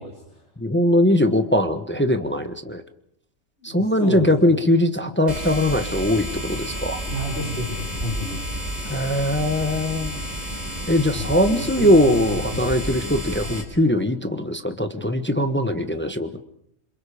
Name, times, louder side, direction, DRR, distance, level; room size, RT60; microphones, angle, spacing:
voice 1, 0.0-0.4 3.6-4.6 7.1-8.4 11.1-13.6, equal, 65° left, -2 dB, 4.9 m, -32 dB
voice 2, 0.6-2.8 3.6-7.0 8.9-10.2 10.9-16.4, left 1 dB, 10° left, 8 dB, 1.3 m, -21 dB
sound 1, 5.3-13.6, equal, 35° right, 4.3 m, -31 dB
28.0 x 26.0 x 5.1 m, 0.69 s
omnidirectional pair, 1.3 m